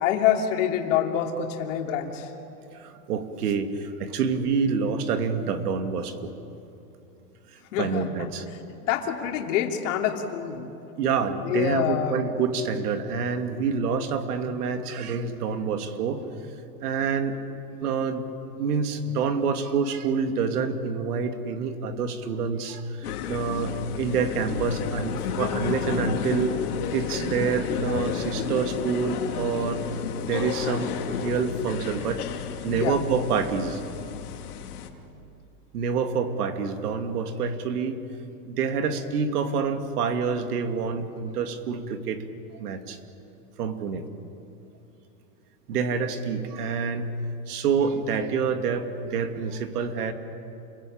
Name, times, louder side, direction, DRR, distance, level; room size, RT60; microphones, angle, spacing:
voice 1, 0.0-2.3 7.7-8.6 8.9-10.7 11.4-12.2 32.7-33.0, left 9 dB, 55° left, 2 dB, 3.1 m, -26 dB
voice 2, 2.7-6.3 7.5-8.5 11.0-16.3 16.8-17.4 17.8-18.3 18.6-26.5 26.9-29.8 30.2-32.2 32.6-33.8 35.7-38.0 38.5-42.2 42.6-43.0 43.6-44.0 45.7-47.1 47.5-50.1, right 5 dB, 85° right, 7 dB, 2.6 m, -27 dB
sound 1, 23.0-34.9, left 8 dB, 80° left, 2.9 m, -32 dB
29.0 x 21.5 x 8.8 m, 2.8 s
supercardioid pair, 170°, 45 cm